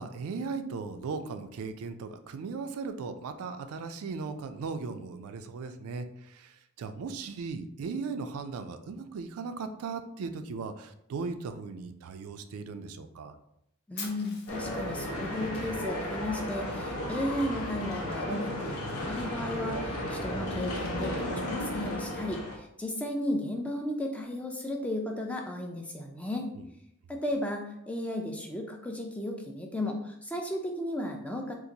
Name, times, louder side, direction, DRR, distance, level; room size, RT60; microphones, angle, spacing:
voice 1, 0.0-13.4 26.6-26.7, right 4 dB, 80° right, 9 dB, 0.3 m, -37 dB
voice 2, 13.9-26.5 27.1-31.5, left 1 dB, 5° left, 2 dB, 0.3 m, -34 dB
Fire, 14.0-16.0, left 4 dB, 45° left, 0.7 m, -44 dB
sound 1, 14.5-22.6, left 1 dB, 80° left, 0.7 m, -34 dB
3.9 x 2.5 x 2.7 m, 0.76 s
head